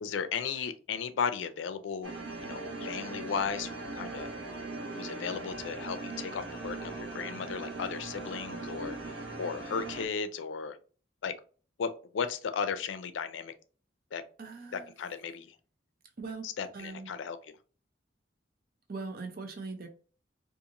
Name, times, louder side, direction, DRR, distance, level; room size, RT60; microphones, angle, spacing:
voice 1, 0.0-2.1 2.4-4.3 4.9-9.0 9.4-10.8 11.2-11.3 11.8-13.5 14.1-14.2 14.7-15.6 16.4-17.4, left 6 dB, 90° left, 0.4 m, -35 dB
sound 1, 2.0-10.1, right 3 dB, 80° right, 0.9 m, -40 dB
voice 2, 14.4-14.9 16.2-16.5 16.7-17.1 18.9-19.9, right 3 dB, 55° right, 0.6 m, -40 dB
2.5 x 2.5 x 2.8 m
head